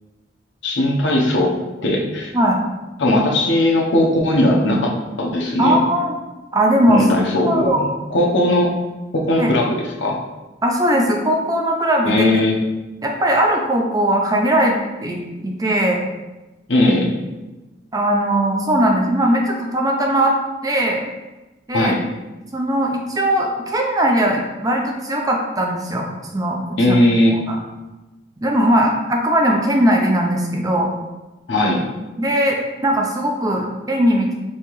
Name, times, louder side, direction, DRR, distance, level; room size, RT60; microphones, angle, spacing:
voice 1, 0.6-2.3 3.0-5.8 6.9-8.7 9.1-10.2 12.1-12.5 16.7-17.1 21.7-22.0 26.8-27.4 31.5-31.8, left 1 dB, 70° left, -1 dB, 0.8 m, -18 dB
voice 2, 5.6-6.1 6.5-7.1 7.4-7.8 9.4-9.5 10.6-12.2 13.0-16.0 17.9-20.3 20.6-21.0 21.7-21.9 22.5-26.1 26.3-27.0 27.5-27.6 28.4-30.9 32.2-32.6 32.8-34.3, right 1 dB, 20° right, 1 dB, 0.4 m, -19 dB
5.4 x 2.9 x 3.0 m, 1.1 s
head